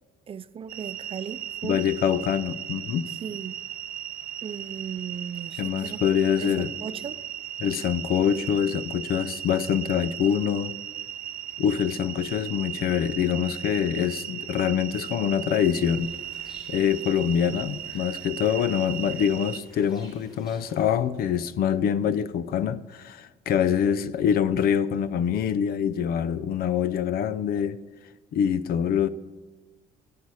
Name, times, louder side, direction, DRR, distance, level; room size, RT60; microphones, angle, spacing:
voice 1, 0.3-1.8 3.1-3.6 4.4-6.0 6.4-7.2, right 7 dB, 35° right, 0.4 m, -37 dB
sound 1, 0.7-19.6, right 11 dB, 60° right, 0.9 m, -37 dB
voice 2, 1.6-3.1 5.6-6.7 7.6-10.7 11.6-16.1 16.7-27.8 28.3-29.1, left 8 dB, 60° left, 0.6 m, -25 dB
sound 2, 15.8-21.0, left 1 dB, 25° left, 2.4 m, -52 dB
16.0 x 8.6 x 4.8 m
cardioid pair, 110°, 17 cm